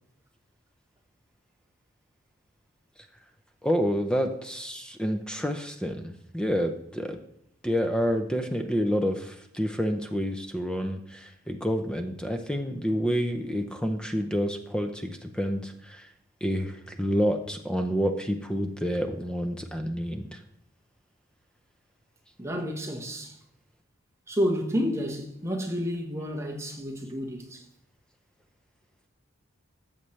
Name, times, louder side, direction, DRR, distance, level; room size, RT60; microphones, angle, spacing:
voice 1, 3.6-7.2 7.6-16.1 16.4-20.4, equal, 5° left, 0.6 m, -28 dB
voice 2, 22.4-23.4 24.3-27.7, equal, 15° right, 1.2 m, -30 dB
14.0 x 7.3 x 3.2 m
head